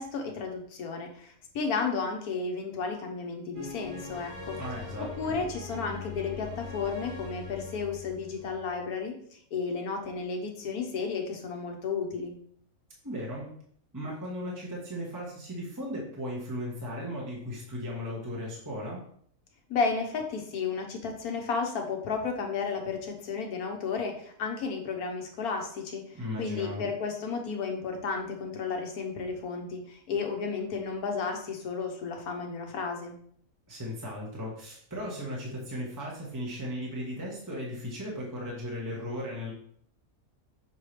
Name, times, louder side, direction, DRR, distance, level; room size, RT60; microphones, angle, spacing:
voice 1, 0.0-4.6 5.0-9.2 9.5-12.3 19.7-33.1, left 5 dB, 80° left, 3 dB, 1.5 m, -33 dB
sound 1, 3.5-8.7, left 3 dB, 80° right, 3.0 m, -41 dB
voice 2, 4.5-5.4 13.0-13.5 13.9-19.0 26.1-26.8 33.7-39.5, equal, 15° right, -4 dB, 1.2 m, -36 dB
6.7 x 4.6 x 3.3 m, 0.62 s
omnidirectional pair, 1.5 m